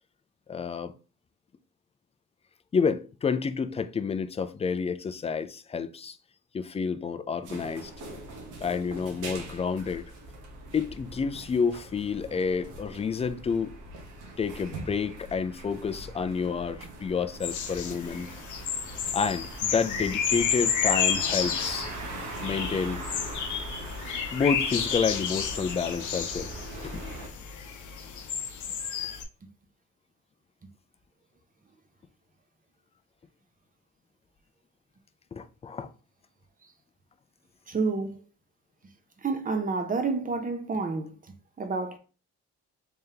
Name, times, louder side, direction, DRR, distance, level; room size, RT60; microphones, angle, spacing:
voice 1, 0.5-0.9 2.7-6.2 6.5-7.9 8.6-10.1 10.7-13.7 14.4-18.3 19.1-21.9 22.4-23.0 24.3-26.5 26.8-27.0 35.3-35.9, left 5 dB, 20° left, 0.3 m, -29 dB
sound 1, 7.4-27.3, right 2 dB, 90° right, 1.1 m, -41 dB
sound 2, 17.4-29.2, left 7 dB, 75° left, 0.7 m, -31 dB
voice 2, 37.7-38.2 39.2-41.2 41.6-42.0, right 4 dB, 30° right, 0.7 m, -29 dB
3.4 x 3.4 x 2.8 m
cardioid pair, 90°, 30 cm